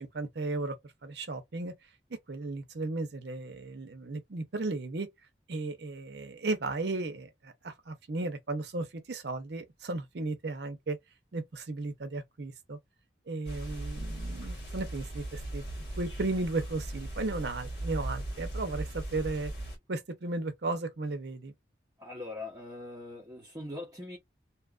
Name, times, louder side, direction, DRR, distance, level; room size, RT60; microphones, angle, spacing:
voice 1, 0.0-1.7 2.3-5.1 5.5-11.0 11.3-12.8 13.3-15.6 16.0-19.5 19.9-21.5, right 2 dB, 70° right, 0.7 m, -35 dB
sound 1, 13.4-19.8, right 1 dB, 70° left, 1.3 m, -38 dB
voice 2, 22.0-24.2, left 2 dB, 20° right, 0.8 m, -41 dB
2.7 x 2.4 x 2.4 m
head